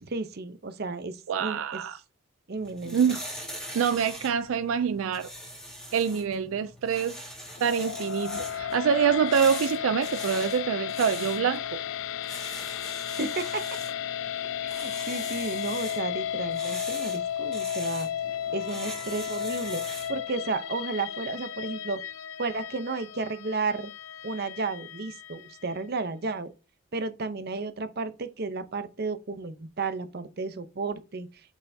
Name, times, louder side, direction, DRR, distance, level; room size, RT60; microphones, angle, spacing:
voice 1, 0.0-1.8 2.5-3.0 13.2-13.6 14.6-18.1 18.5-19.8 20.1-22.0 22.4-23.9 24.2-26.5 26.9-31.3, right 3 dB, 50° right, 0.7 m, -33 dB
voice 2, 1.3-2.0 2.8-3.3 3.7-5.3 5.9-7.2 7.6-11.8, right 7 dB, 80° right, 0.4 m, -26 dB
sound 1, 2.6-20.2, equal, 5° left, 1.8 m, -42 dB
sound 2, 7.6-25.8, left 9 dB, 75° left, 0.5 m, -34 dB
6.2 x 5.6 x 2.7 m
head